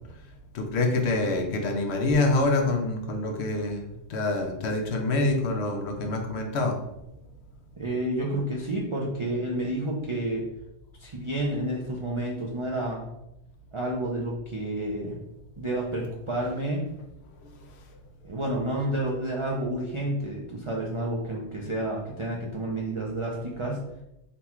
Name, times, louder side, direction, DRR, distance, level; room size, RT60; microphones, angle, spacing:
voice 1, 0.5-6.8, left 2 dB, 65° left, 4 dB, 0.9 m, -26 dB
voice 2, 7.8-10.5 11.0-13.0 13.7-15.2 15.6-16.9 18.2-23.8, right 1 dB, 45° right, -2 dB, 0.3 m, -30 dB
4.0 x 2.3 x 4.3 m, 0.87 s
omnidirectional pair, 1.3 m